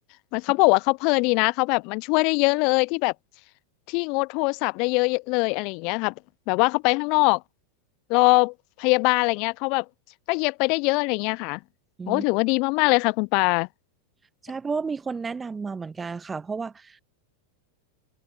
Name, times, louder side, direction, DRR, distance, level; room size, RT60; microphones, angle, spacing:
voice 1, 0.3-3.1 3.9-6.1 6.5-7.4 8.1-9.9 10.3-11.6 12.1-13.7, left 30 dB, 50° left, 0.4 m, -22 dB
voice 2, 14.4-17.0, right 5 dB, 15° right, 1.4 m, -32 dB
hypercardioid pair, 95°, 0 cm